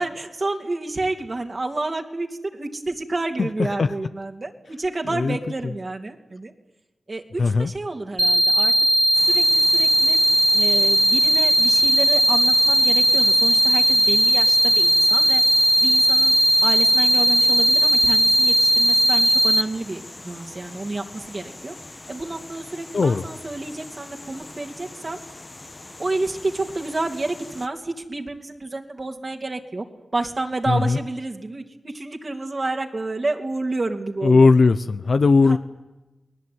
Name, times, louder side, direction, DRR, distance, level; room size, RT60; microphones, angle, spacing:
voice 1, 0.0-6.5 7.1-8.7 9.2-10.2 10.5-15.4 15.8-16.3 16.6-21.7 22.1-25.2 26.0-29.8 30.1-34.5 35.4-35.6, right 2 dB, 45° right, 2 dB, 3.0 m, -30 dB
voice 2, 7.4-7.7 22.9-23.2 30.7-31.0 34.2-35.6, left 4 dB, 65° left, 10 dB, 0.9 m, -17 dB
sound 1, 8.2-19.6, equal, 10° right, 0.9 m, -17 dB
sound 2, 9.1-27.7, left 2 dB, 35° left, 1.3 m, -42 dB
29.5 x 19.5 x 9.6 m, 1.1 s
cardioid pair, 65°, 0 cm